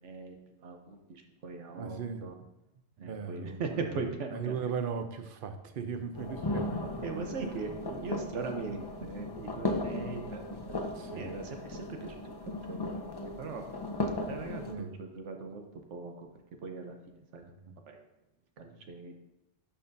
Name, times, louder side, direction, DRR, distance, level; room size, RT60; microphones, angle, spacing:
voice 1, 0.0-2.3 3.0-4.5 7.0-12.2 12.7-12.9 13.4-13.7 14.3-15.6 15.9-16.1 16.6-17.4 17.9-18.0 18.6-19.2, right 4 dB, 90° right, 4 dB, 1.2 m, -40 dB
voice 2, 1.7-2.2 3.0-6.8 7.2-7.6 10.9-11.4 14.6-14.9 17.6-17.7 18.6-18.8, right 6 dB, 55° right, 8 dB, 0.7 m, -38 dB
sound 1, 6.1-14.7, left 2 dB, 35° left, 0.4 m, -37 dB
11.0 x 4.3 x 2.6 m, 0.91 s
omnidirectional pair, 1.2 m